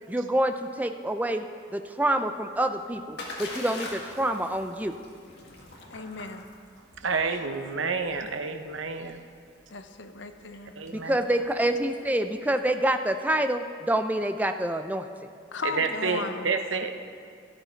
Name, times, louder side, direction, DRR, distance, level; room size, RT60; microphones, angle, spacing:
voice 1, 0.1-1.4 1.7-4.9 10.9-15.1, right 1 dB, 10° right, 7 dB, 0.4 m, -27 dB
Splash splatter, 2.5-12.3, left 2 dB, 55° left, 1.8 m, -44 dB
voice 2, 5.9-6.4 9.7-10.7 15.5-16.5, left 4 dB, 75° left, 7 dB, 0.8 m, -36 dB
voice 3, 7.0-9.2 10.8-11.2 15.6-17.0, right 4 dB, 85° right, 7 dB, 0.8 m, -29 dB
12.5 x 11.5 x 4.5 m, 2.2 s
head